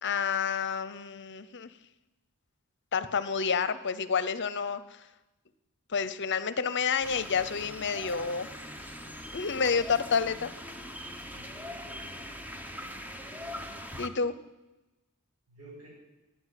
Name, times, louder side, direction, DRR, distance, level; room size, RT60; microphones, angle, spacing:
voice 1, 0.0-1.7 2.9-4.8 5.9-8.5 9.3-10.5 14.0-14.3, left 6 dB, 50° left, 14 dB, 0.7 m, -29 dB
sound 1, 7.0-14.1, equal, 5° right, 1.0 m, -42 dB
voice 2, 11.3-12.2 13.3-13.9 15.5-15.9, right 2 dB, 80° right, -8 dB, 6.4 m, -52 dB
13.5 x 8.6 x 9.9 m, 1.0 s
head